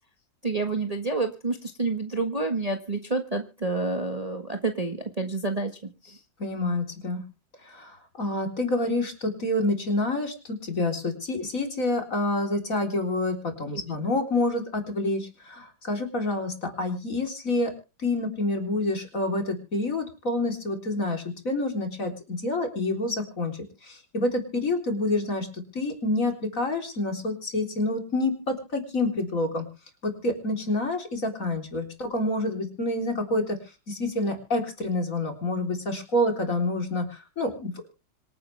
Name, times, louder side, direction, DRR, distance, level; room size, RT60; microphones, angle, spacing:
voice 1, 0.4-5.7 6.0-6.2 13.7-13.8, right 3 dB, 20° right, 5 dB, 1.5 m, -28 dB
voice 2, 6.4-7.2 7.6-17.7 18.0-29.7 30.0-33.6 33.9-37.9, left 2 dB, 45° left, 4 dB, 4.2 m, -28 dB
26.0 x 9.5 x 3.4 m, 0.32 s
omnidirectional pair, 2.1 m